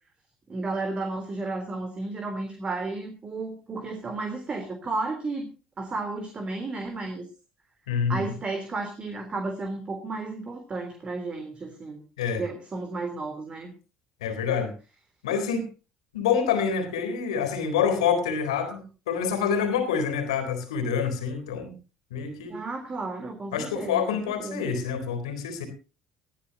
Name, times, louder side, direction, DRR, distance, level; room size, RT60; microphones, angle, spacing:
voice 1, 0.5-7.3 8.1-12.0 12.4-13.7 22.5-24.6, right 3 dB, 35° right, 5 dB, 3.5 m, -33 dB
voice 2, 7.9-8.3 12.2-12.4 14.2-14.7 15.2-15.7 16.1-21.7 22.1-22.6 23.5-25.7, left 7 dB, 80° left, 8 dB, 3.8 m, -27 dB
20.5 x 14.5 x 2.8 m, 0.34 s
hypercardioid pair, 60°, 3 cm